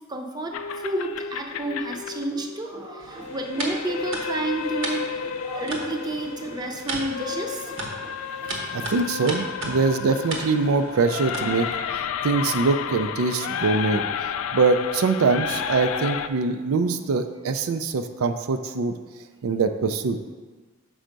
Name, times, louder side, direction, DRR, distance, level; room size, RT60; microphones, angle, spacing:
voice 1, 0.1-8.9, right 2 dB, 20° right, 3 dB, 0.6 m, -31 dB
sound 1, 0.5-16.3, left 7 dB, 75° left, 0.3 m, -32 dB
sound 2, 3.0-11.8, right 2 dB, 65° right, 1.1 m, -36 dB
voice 2, 8.5-11.7 11.9-14.0 14.5-18.9 19.4-20.2, right 4 dB, 90° right, 8 dB, 0.4 m, -23 dB
6.3 x 4.4 x 5.1 m, 1.4 s
head